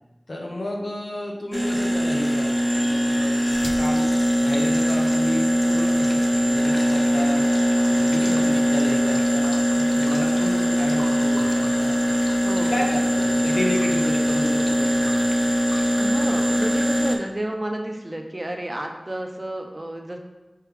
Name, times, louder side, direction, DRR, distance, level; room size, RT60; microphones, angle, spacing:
voice 1, 0.3-4.1 4.4-7.5 7.9-12.0 12.7-15.1 15.4-15.5, left 1 dB, 85° left, -1 dB, 0.7 m, -31 dB
sound 1, 1.5-17.2, equal, 25° left, 0.6 m, -21 dB
voice 2, 8.2-8.6 12.4-12.7 16.0-20.2, right 1 dB, 40° right, 3 dB, 0.5 m, -31 dB
4.6 x 3.4 x 3.2 m, 1.1 s
wide cardioid pair, 40°, 0 cm